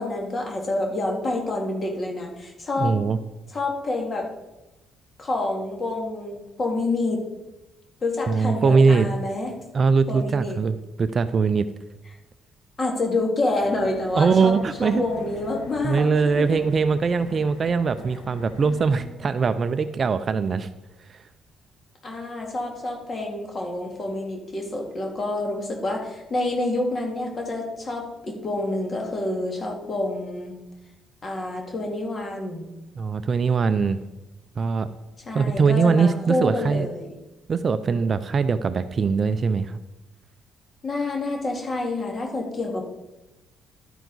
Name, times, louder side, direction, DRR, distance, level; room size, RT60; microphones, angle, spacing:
voice 1, 0.0-3.0 3.5-4.3 5.2-7.3 8.0-9.5 10.1-10.6 12.8-14.5 14.8-16.6 22.0-30.5 31.2-32.7 35.2-37.1 40.8-42.8, left 2 dB, 30° left, 1 dB, 2.0 m, -28 dB
voice 2, 2.8-3.2 8.3-9.1 9.7-11.7 14.2-15.0 15.8-20.7 21.1-21.2 33.0-34.0 34.6-34.9 35.3-36.9 37.5-39.8, right 5 dB, 35° right, 11 dB, 0.4 m, -21 dB
sound 1, 13.6-19.1, left 2 dB, 65° left, 1.4 m, -44 dB
sound 2, 14.2-19.3, left 2 dB, 50° left, 1.7 m, -46 dB
12.0 x 9.2 x 4.0 m, 1.0 s
cardioid pair, 140°, 0 cm